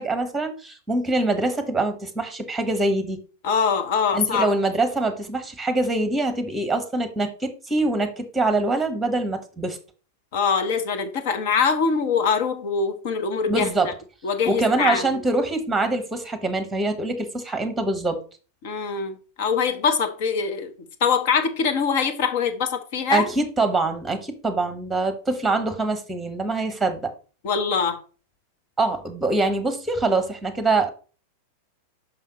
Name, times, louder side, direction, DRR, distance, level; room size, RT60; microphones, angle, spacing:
voice 1, 0.0-3.2 4.1-9.8 13.5-13.9 14.5-18.2 23.1-27.1 28.8-30.9, right 2 dB, 10° right, 1.3 m, -24 dB
voice 2, 3.4-4.5 10.3-13.9 14.2-15.0 18.6-20.7 21.0-23.3 27.4-28.0, left 6 dB, 50° left, 1.1 m, -23 dB
5.6 x 5.5 x 4.2 m
figure-of-eight pair, 90°, 0 cm